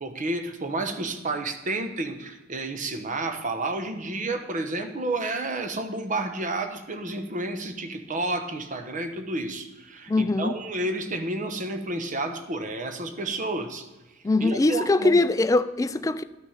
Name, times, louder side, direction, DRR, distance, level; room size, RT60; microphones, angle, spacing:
voice 1, 0.0-13.9 14.4-15.1, right 2 dB, 40° right, 0.9 m, -30 dB
voice 2, 10.1-10.5 14.2-16.2, left 2 dB, 15° left, 0.3 m, -22 dB
12.0 x 6.2 x 5.6 m
head